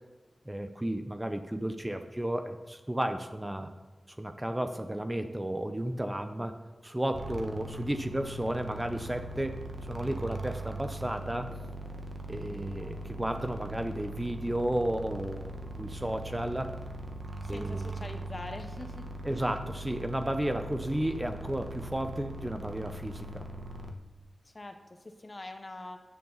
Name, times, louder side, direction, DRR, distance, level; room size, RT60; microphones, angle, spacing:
voice 1, 0.5-3.7 4.1-6.6 6.8-9.6 9.9-11.5 12.3-15.5 15.8-16.7 17.5-17.9 19.2-23.5, right 1 dB, 15° right, 7 dB, 0.8 m, -33 dB
sound 1, 7.1-23.9, right 1 dB, 55° right, 1.3 m, -40 dB
voice 2, 17.4-19.1 24.4-26.0, left 2 dB, 35° left, 6 dB, 1.4 m, -43 dB
16.0 x 10.5 x 4.1 m, 1.2 s
wide cardioid pair, 95°, 0 cm